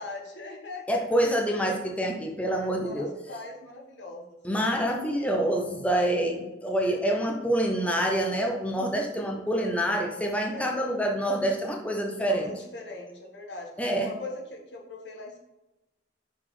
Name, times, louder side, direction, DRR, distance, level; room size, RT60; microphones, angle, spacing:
voice 1, 0.0-1.3 2.5-4.7 6.8-7.0 8.7-9.3 10.5-10.8 12.2-13.7 14.0-15.4, left 2 dB, 85° left, -1 dB, 1.5 m, -41 dB
voice 2, 0.9-3.1 4.4-12.5 13.8-14.1, right 1 dB, 10° left, 1 dB, 0.7 m, -27 dB
5.9 x 4.2 x 4.9 m, 1.0 s
head